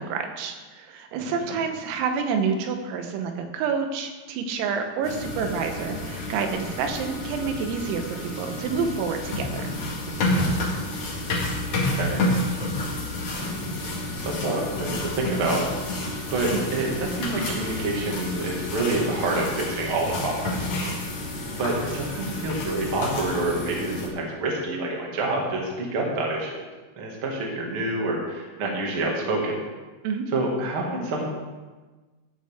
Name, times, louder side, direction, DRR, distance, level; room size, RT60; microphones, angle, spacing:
voice 1, 0.0-9.7 16.5-16.7 30.0-30.3, right 5 dB, 85° right, 5 dB, 3.7 m, -28 dB
voice 2, 1.2-1.6 10.4-10.6 11.2-11.4 11.7-12.2 13.4-13.6 13.9-15.6 16.3-20.9 21.6-26.5 27.0-29.6 30.3-31.2, right 2 dB, 55° right, -2 dB, 1.4 m, -28 dB
sound 1, 5.0-24.1, left 1 dB, 55° left, 1.7 m, -30 dB
14.0 x 9.0 x 3.6 m, 1.3 s
omnidirectional pair, 5.9 m